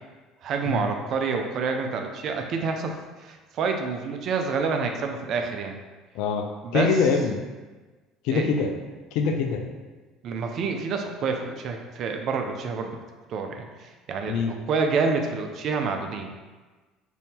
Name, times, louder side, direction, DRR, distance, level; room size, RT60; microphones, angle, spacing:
voice 1, 0.4-2.9 3.2-5.8 6.6-6.9 8.3-8.5 10.2-12.9 13.3-14.4 14.7-16.3, right 5 dB, 50° right, 4 dB, 0.4 m, -28 dB
voice 2, 6.7-7.4 8.2-8.8 9.1-9.6 14.3-14.5, left 5 dB, 60° left, 4 dB, 0.3 m, -24 dB
2.7 x 2.6 x 3.4 m, 1.3 s
figure-of-eight pair, 60°, 0 cm